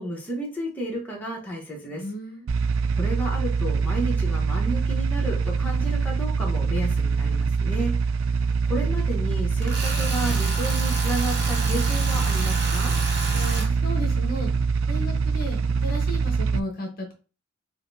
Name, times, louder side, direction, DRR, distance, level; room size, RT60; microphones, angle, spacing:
voice 1, 0.0-2.0 3.0-7.9 8.7-12.9, right 1 dB, 10° left, -3 dB, 0.9 m, -32 dB
voice 2, 1.8-2.5 13.3-14.5 14.9-17.1, equal, 45° left, 2 dB, 0.8 m, -34 dB
sound 1, 2.5-16.6, right 5 dB, 75° right, 0.3 m, -24 dB
Tools, 9.6-13.7, right 2 dB, 55° right, 1.0 m, -31 dB
4.9 x 2.2 x 2.6 m, 0.34 s
head